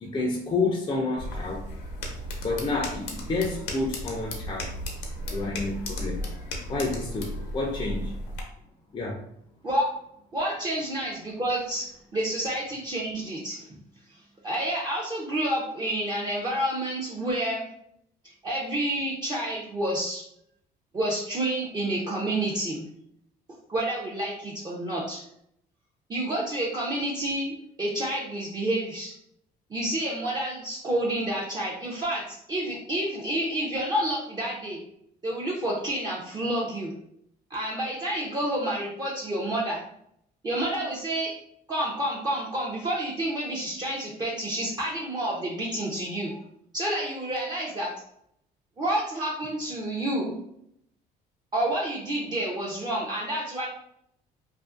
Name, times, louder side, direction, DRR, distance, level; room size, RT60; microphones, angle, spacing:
voice 1, 0.0-1.7 2.4-4.7 5.3-6.2 6.7-8.1 8.9-9.2, left 3 dB, 25° left, 0 dB, 0.4 m, -29 dB
sound 1, 1.2-8.4, left 1 dB, 85° left, 0.6 m, -35 dB
voice 2, 10.3-11.9 12.1-13.6 14.1-17.7 18.4-20.2 20.9-22.9 23.7-25.2 26.1-29.1 29.7-34.8 35.2-36.9 37.5-39.8 40.4-41.3 41.7-46.4 46.7-47.9 48.8-50.3 51.5-53.7, right 1 dB, 25° right, -5 dB, 0.5 m, -29 dB
2.5 x 2.4 x 2.4 m, 0.73 s
cardioid pair, 110°, 17 cm